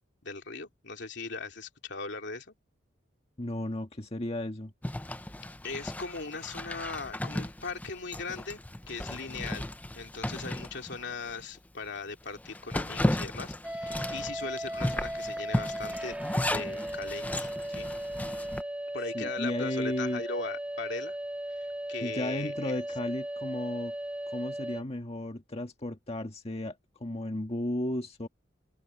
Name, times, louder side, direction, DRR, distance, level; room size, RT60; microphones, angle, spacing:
voice 1, 0.2-2.5 5.6-16.1 16.5-17.9 18.9-21.2 21.9-22.8, left 4 dB, 65° left, 3.0 m, -39 dB
voice 2, 3.4-4.7 19.1-20.2 22.0-23.9 24.3-28.3, left 1 dB, 35° left, 1.7 m, -34 dB
Zipper (clothing), 4.8-11.4 11.8-11.9 12.3-18.6, left 1 dB, 10° left, 0.6 m, -35 dB
sound 1, 13.6-24.8, right 1 dB, 5° right, 2.4 m, -37 dB
open air
head